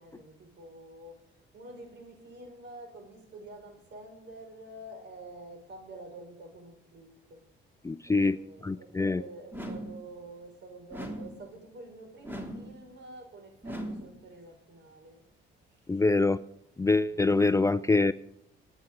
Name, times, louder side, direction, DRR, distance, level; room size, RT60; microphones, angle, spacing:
voice 1, 0.0-7.4 8.1-15.2 15.7-16.0 17.0-17.5, right 2 dB, 65° right, 3 dB, 5.8 m, -48 dB
voice 2, 7.8-8.4 8.6-9.2 15.9-16.4 16.8-18.1, left 3 dB, 15° left, 14 dB, 0.4 m, -24 dB
sound 1, 9.5-10.1 10.9-11.5 12.2-12.8 13.6-14.2, equal, 10° right, 3.0 m, -39 dB
26.5 x 9.0 x 3.9 m, 0.78 s
cardioid pair, 90°, 20 cm